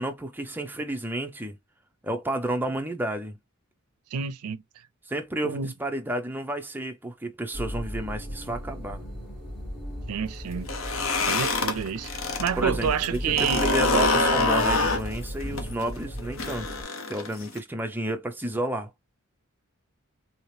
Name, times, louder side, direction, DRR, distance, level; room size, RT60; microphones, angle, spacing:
voice 1, 0.0-1.6 2.0-3.4 5.1-9.0 12.6-16.7 17.1-18.9, right 1 dB, 10° right, 0.5 m, -31 dB
voice 2, 4.1-4.6 5.4-5.7 10.1-10.7 11.2-13.6, right 7 dB, 85° right, 0.4 m, -29 dB
sound 1, 7.5-16.8, equal, 10° left, 1.6 m, -36 dB
sound 2, 10.6-12.5 12.8-17.6, left 3 dB, 65° left, 0.8 m, -25 dB
2.8 x 2.8 x 3.2 m
head